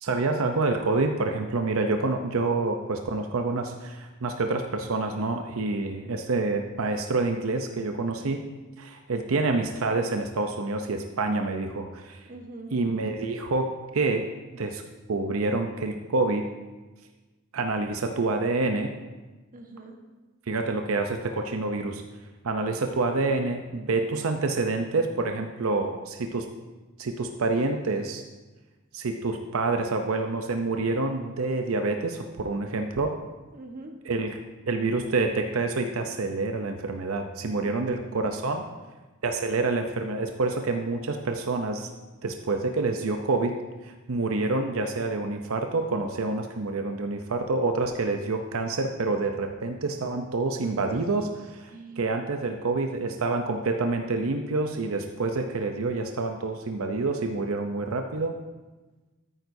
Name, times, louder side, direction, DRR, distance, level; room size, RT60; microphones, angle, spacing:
voice 1, 0.0-8.4 8.8-12.2 12.7-14.3 14.5-14.8 15.1-16.5 17.5-18.9 20.5-22.0 22.4-26.5 27.0-28.2 28.9-33.2 34.1-34.4 34.7-38.6 39.2-41.9 42.2-43.6 43.8-51.7 52.0-58.4, right 3 dB, 85° right, 5 dB, 0.7 m, -27 dB
voice 2, 12.3-12.8 19.5-20.0 33.5-34.0 37.6-38.7 51.7-52.2, right 2 dB, 40° right, 2 dB, 1.2 m, -43 dB
13.5 x 9.1 x 2.7 m, 1.2 s
head